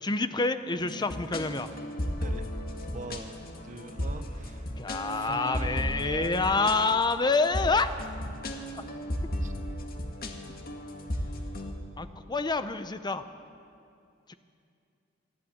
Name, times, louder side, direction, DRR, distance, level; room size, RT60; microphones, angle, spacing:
voice 1, 0.0-1.7 4.8-7.9 12.0-13.2 14.3-14.4, left 3 dB, 20° left, 10 dB, 0.6 m, -27 dB
sound 1, 0.8-11.7, equal, 50° left, 1.9 m, -35 dB
voice 2, 2.2-2.6 2.9-4.7 5.1-7.0 9.4-9.5, right 3 dB, 40° right, 10 dB, 1.0 m, -41 dB
25.5 x 12.0 x 8.6 m, 2.5 s
head